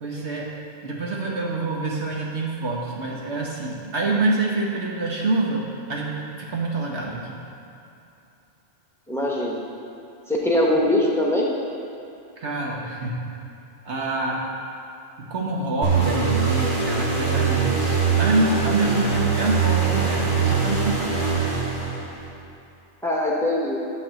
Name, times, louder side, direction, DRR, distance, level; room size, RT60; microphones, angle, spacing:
voice 1, 0.0-0.5 0.8-5.6 5.9-7.4 12.4-13.2 13.8-14.5 15.2-21.2, right 2 dB, 70° right, -2 dB, 1.4 m, -26 dB
voice 2, 9.1-9.6 10.3-11.5 23.0-23.8, left 1 dB, ahead, -4 dB, 1.3 m, -22 dB
sound 1, 15.8-22.3, right 5 dB, 45° right, 2.2 m, -22 dB
10.5 x 4.0 x 7.5 m, 2.7 s
omnidirectional pair, 1.2 m